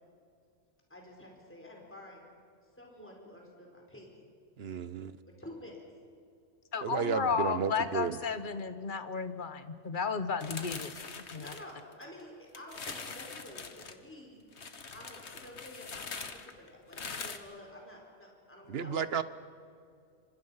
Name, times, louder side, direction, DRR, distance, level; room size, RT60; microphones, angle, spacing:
voice 1, 0.9-2.3 2.8-4.3 5.4-5.8 11.4-14.4 14.9-19.0, left 1 dB, 10° left, -1 dB, 4.5 m, -50 dB
voice 2, 4.6-5.2 6.8-8.2 18.7-19.2, right 6 dB, 60° right, 14 dB, 1.1 m, -32 dB
voice 3, 6.7-10.9 11.3-11.5, left 5 dB, 45° left, 10 dB, 1.3 m, -33 dB
sound 1, 10.4-12.2 12.5-13.9 14.5-17.4, left 5 dB, 70° left, 1.7 m, -43 dB
28.0 x 26.0 x 5.7 m, 2.4 s
omnidirectional pair, 1.2 m